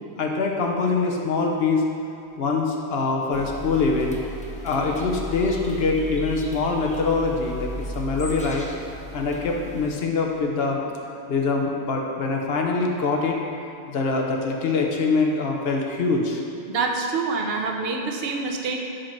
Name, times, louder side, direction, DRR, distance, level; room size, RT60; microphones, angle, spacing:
voice 1, 0.2-1.8 2.4-4.2 4.6-8.7 9.1-10.8 11.3-13.4 13.9-16.4, left 4 dB, 70° left, 1 dB, 1.0 m, -24 dB
sound 1, 3.3-9.9, equal, 10° left, 0.4 m, -36 dB
voice 2, 16.7-18.8, right 4 dB, 70° right, 2 dB, 0.9 m, -26 dB
5.0 x 4.5 x 5.8 m, 2.6 s
omnidirectional pair, 1.1 m